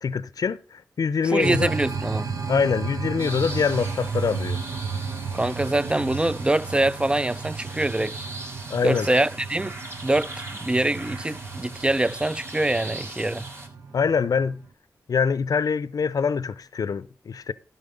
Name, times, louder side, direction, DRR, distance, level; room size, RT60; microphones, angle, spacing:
voice 1, 0.0-1.7 2.5-4.6 8.7-9.1 13.9-14.6 15.1-17.5, left 5 dB, 70° left, 0.6 m, -24 dB
voice 2, 1.2-2.3 5.3-8.2 8.8-9.7 10.0-13.5, right 1 dB, 15° right, 0.4 m, -24 dB
sound 1, 1.4-14.7, right 5 dB, 70° right, 0.9 m, -34 dB
sound 2, 3.2-13.7, right 1 dB, 40° right, 3.0 m, -40 dB
12.0 x 5.6 x 5.4 m
cardioid pair, 45°, 6 cm